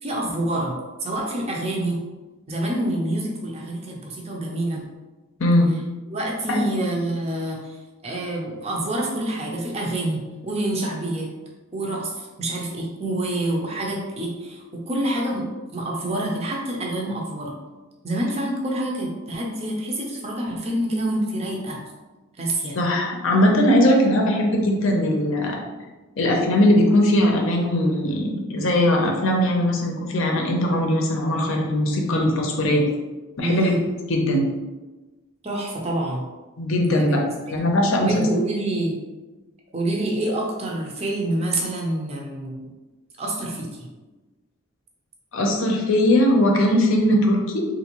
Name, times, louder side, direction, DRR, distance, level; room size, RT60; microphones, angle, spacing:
voice 1, 0.0-2.0 2.5-4.8 6.1-7.8 8.0-11.3 11.7-15.4 15.7-17.6 18.0-21.8 22.4-22.8 33.4-33.8 35.4-36.2 36.9-37.2 37.5-37.6 38.0-39.0 39.7-42.7 43.2-43.9, right 1 dB, 30° right, -1 dB, 0.6 m, -27 dB
voice 2, 5.4-5.7 6.5-6.6 22.8-25.6 26.2-32.8 33.4-33.7 34.1-34.5 36.6-38.2 45.3-47.7, left 1 dB, 65° left, 1 dB, 0.6 m, -20 dB
3.4 x 2.6 x 2.9 m, 1.2 s
head